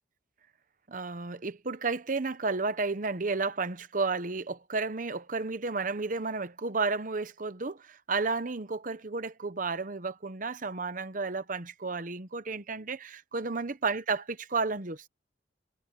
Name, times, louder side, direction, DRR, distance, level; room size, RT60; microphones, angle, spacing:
voice 1, 0.9-15.1, right 4 dB, 45° right, 0.9 m, -32 dB
head